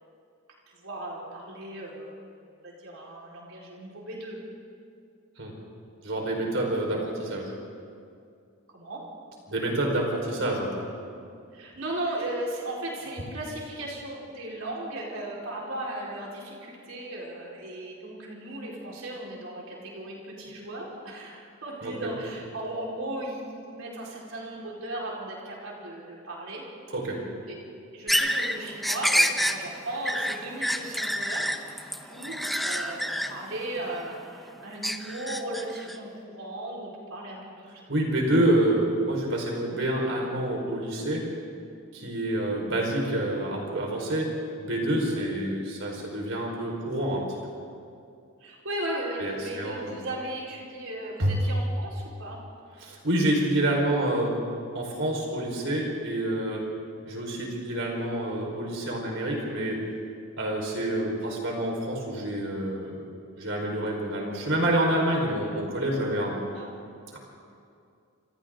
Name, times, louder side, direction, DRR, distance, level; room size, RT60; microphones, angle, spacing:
voice 1, 0.7-2.2 2.6-4.4 8.7-9.0 11.5-26.6 27.5-27.6 27.9-31.5 32.0-37.7 42.0-42.1 45.1-45.3 48.4-52.4 66.5-66.7, right 1 dB, 75° right, -4 dB, 4.6 m, -36 dB
voice 2, 6.0-7.5 9.5-10.8 21.8-22.1 26.9-27.2 37.9-41.3 41.9-47.4 49.2-50.0 51.2-51.4 52.8-54.4 54.7-56.6 57.0-59.8 60.3-66.4 67.1-67.2, right 1 dB, 60° right, -1 dB, 4.8 m, -27 dB
sound 1, 28.1-34.4 34.8-36.0, equal, ahead, 0.8 m, -28 dB
28.5 x 27.5 x 3.9 m, 2.4 s
head